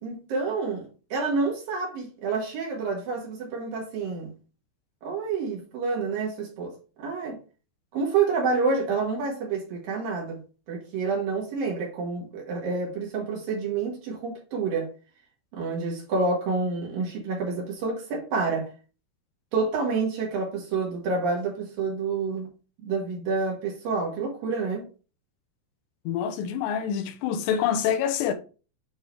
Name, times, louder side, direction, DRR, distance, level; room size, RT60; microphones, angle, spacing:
voice 1, 0.0-4.3 5.0-6.7 7.0-7.4 7.9-10.4 10.7-14.9 15.5-18.7 19.5-22.5 22.8-24.9, right 4 dB, 60° right, 3.4 m, -28 dB
voice 2, 26.1-28.3, left 8 dB, 85° left, 3.1 m, -26 dB
9.0 x 3.3 x 4.7 m
omnidirectional pair, 4.9 m